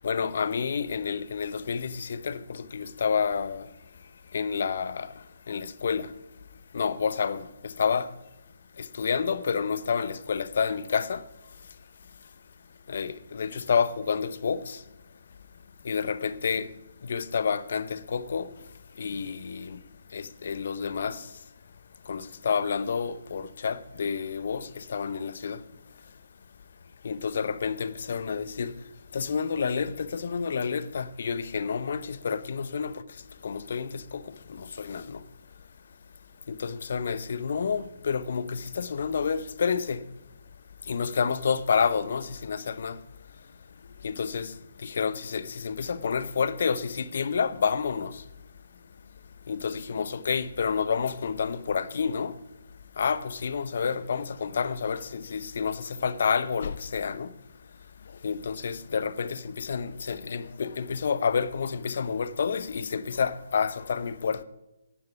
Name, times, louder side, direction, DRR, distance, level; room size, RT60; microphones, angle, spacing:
voice 1, 0.0-3.7 4.3-5.1 5.5-6.1 6.7-8.1 8.8-11.2 12.9-14.8 15.8-16.7 17.0-18.5 19.0-19.8 20.1-21.3 22.1-25.6 27.0-28.7 29.1-32.9 33.4-34.2 34.5-35.2 36.5-40.0 40.9-43.0 44.0-44.5 44.8-48.2 49.5-52.3 53.0-57.3 58.2-64.4, left 6 dB, 60° left, 0.7 m, -29 dB
11.0 x 9.7 x 4.9 m
figure-of-eight pair, 145°, 0 cm